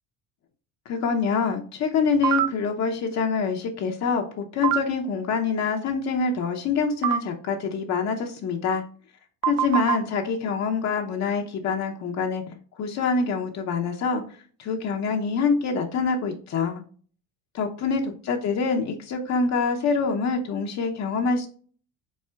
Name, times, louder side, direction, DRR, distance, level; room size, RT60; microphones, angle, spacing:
voice 1, 0.9-8.8 9.4-12.4 12.8-14.2 14.6-16.8 17.5-21.5, left 5 dB, 50° left, 2 dB, 0.8 m, -25 dB
sound 1, 2.2-2.5 4.6-4.8 7.0-7.2 9.4-10.0, right 11 dB, 70° right, 0.5 m, -22 dB
4.3 x 4.1 x 2.2 m, 0.44 s
cardioid pair, 105°, 35 cm